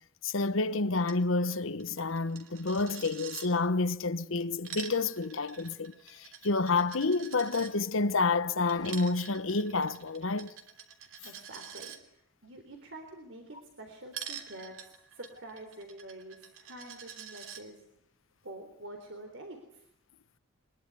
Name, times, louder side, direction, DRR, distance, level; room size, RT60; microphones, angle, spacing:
voice 1, 0.2-10.5, left 3 dB, 80° left, 1.1 m, -29 dB
Coin (dropping), 1.0-1.2 1.5-1.6 1.8-3.5 4.4-7.7 8.7-12.0 14.1-17.6, right 8 dB, 80° right, 3.1 m, -46 dB
voice 2, 11.2-17.9 18.4-19.9, right 1 dB, 65° right, 3.7 m, -47 dB
23.5 x 21.5 x 9.5 m
head